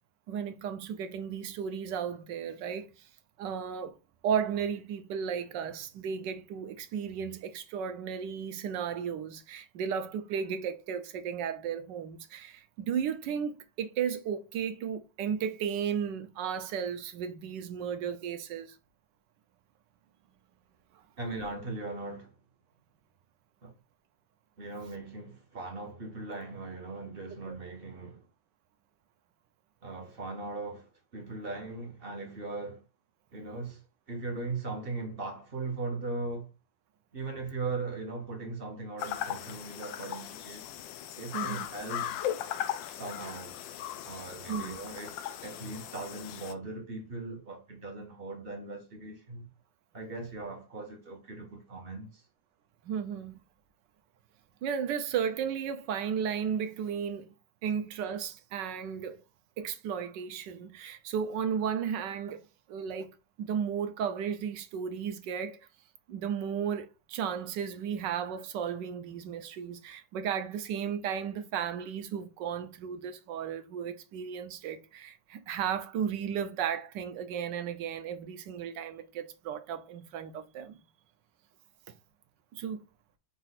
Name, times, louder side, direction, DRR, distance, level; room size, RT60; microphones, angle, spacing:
voice 1, 0.3-2.9 3.4-3.9 4.2-18.8 27.5-27.6 41.3-41.7 44.5-44.7 52.8-53.4 54.6-57.3 57.6-59.2 59.6-65.6 66.1-80.8 82.5-82.8, right 7 dB, 75° right, 1.2 m, -34 dB
voice 2, 21.2-22.3 23.6-23.7 24.6-28.2 29.8-32.8 33.3-33.8 34.1-36.5 37.1-40.6 41.1-42.2 42.9-43.6 44.0-49.5 49.9-52.2, right 3 dB, 45° right, 0.8 m, -39 dB
sound 1, 39.0-46.5, left 11 dB, 80° left, 1.3 m, -38 dB
5.4 x 2.4 x 4.0 m
omnidirectional pair, 2.1 m